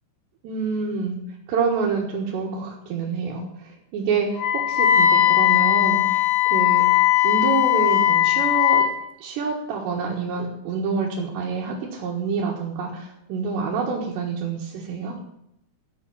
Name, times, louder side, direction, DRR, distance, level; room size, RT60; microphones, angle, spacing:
voice 1, 0.4-1.2 1.5-8.8 9.2-15.2, right 5 dB, 80° right, -3 dB, 3.8 m, -27 dB
Wind instrument woodwind instrument, 4.4-8.9, left 12 dB, 70° left, 3.2 m, -18 dB
12.5 x 6.7 x 8.6 m, 0.80 s
omnidirectional pair, 4.9 m